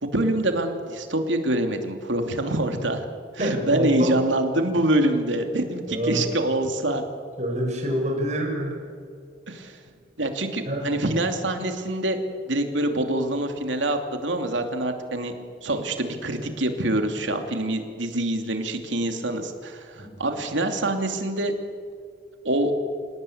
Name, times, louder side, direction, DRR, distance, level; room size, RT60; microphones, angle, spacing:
voice 1, 0.0-3.0 3.3-7.0 9.5-9.8 10.2-12.2 12.5-15.3 15.6-21.5 22.4-22.7, right 1 dB, 80° right, 5 dB, 2.8 m, -25 dB
voice 2, 3.4-4.2 5.9-6.2 7.4-8.8 10.6-11.0 19.9-20.1, right 1 dB, 40° right, 0 dB, 6.4 m, -27 dB
27.5 x 18.0 x 8.7 m, 2.1 s
head